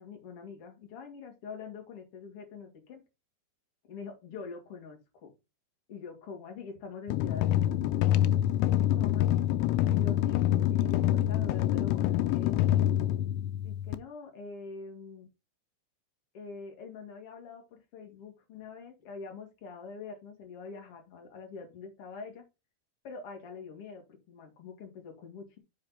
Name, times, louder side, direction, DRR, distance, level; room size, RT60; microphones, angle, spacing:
voice 1, 0.0-3.0 3.9-5.3 5.9-8.0 8.9-9.4 9.9-12.9 13.6-15.3 16.3-22.4 23.0-25.6, left 5 dB, 40° left, 2 dB, 2.3 m, -44 dB
sound 1, 7.1-14.0, left 12 dB, 90° left, 3.2 m, -26 dB
7.3 x 5.5 x 4.2 m, 0.25 s
omnidirectional pair, 5.6 m